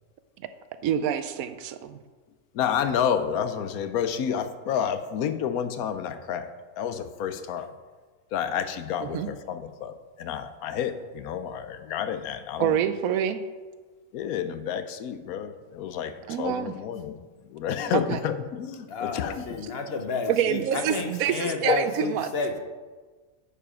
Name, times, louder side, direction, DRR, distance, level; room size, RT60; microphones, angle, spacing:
voice 1, 0.8-2.0 9.1-9.3 12.6-13.4 16.3-16.7 18.1-18.2 20.3-22.3, right 9 dB, 80° right, 11 dB, 1.0 m, -26 dB
voice 2, 2.5-7.7 8.3-12.8 14.1-17.2 17.5-19.6 21.4-21.8, left 8 dB, 85° left, 11 dB, 1.1 m, -30 dB
voice 3, 18.9-22.6, left 3 dB, 50° left, 5 dB, 0.9 m, -31 dB
10.0 x 5.0 x 4.9 m, 1.4 s
omnidirectional pair, 1.5 m